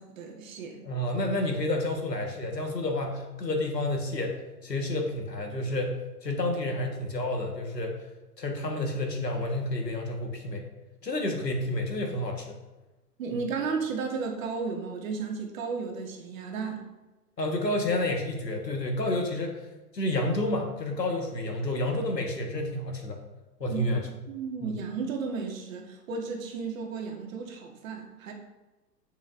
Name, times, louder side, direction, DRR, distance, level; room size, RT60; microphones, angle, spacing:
voice 1, 0.0-0.8 13.2-16.8 23.7-24.0 24.3-28.3, right 5 dB, 55° right, 3 dB, 1.4 m, -34 dB
voice 2, 0.8-8.0 8.4-10.6 11.0-12.6 17.4-19.6 19.9-23.2 23.6-24.0 24.6-24.7, left 1 dB, 85° left, 2 dB, 1.5 m, -30 dB
10.5 x 5.5 x 2.6 m, 1.1 s
figure-of-eight pair, 110°, 49 cm